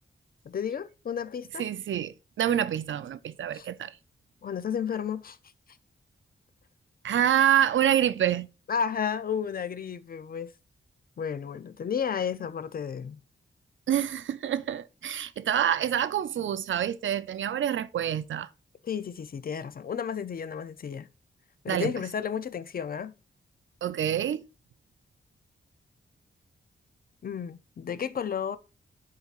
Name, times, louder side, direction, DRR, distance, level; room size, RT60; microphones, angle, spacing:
voice 1, 0.5-1.7 3.5-3.7 4.4-5.4 8.7-10.5 11.2-13.2 18.8-21.1 21.6-23.1 27.2-28.6, left 7 dB, 45° left, 0.4 m, -32 dB
voice 2, 1.6-3.9 7.0-8.5 13.9-18.5 21.7-21.9 23.8-24.4, right 10 dB, 70° right, 0.4 m, -27 dB
10.5 x 4.2 x 2.4 m
wide cardioid pair, 110°, 21 cm